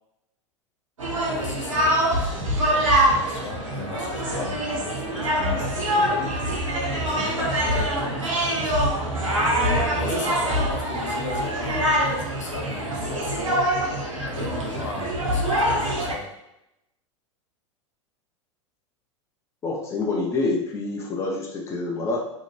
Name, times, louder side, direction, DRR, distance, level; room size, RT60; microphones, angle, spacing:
sound 1, 1.0-16.1, equal, 80° right, 0.7 m, -24 dB
voice 1, 1.3-6.6 7.1-8.8 9.4-13.7 14.2-16.3, left 4 dB, 70° left, 0 dB, 0.7 m, -37 dB
voice 2, 19.6-22.3, left 3 dB, 15° left, 0 dB, 0.4 m, -27 dB
2.6 x 2.1 x 3.0 m, 0.86 s
figure-of-eight pair, 85°, 17 cm